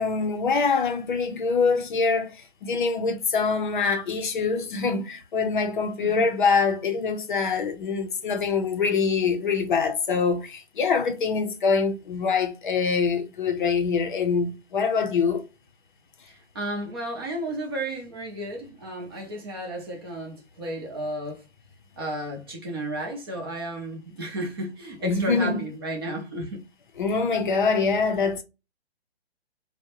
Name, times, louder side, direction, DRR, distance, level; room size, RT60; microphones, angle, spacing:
voice 1, 0.0-2.4 2.6-15.5 25.0-25.6 27.0-28.4, left 5 dB, 50° left, 0.6 m, -24 dB
voice 2, 16.5-21.4 22.0-26.6, right 1 dB, 20° right, 0.5 m, -33 dB
2.6 x 2.1 x 2.8 m
hypercardioid pair, 145°, 33 cm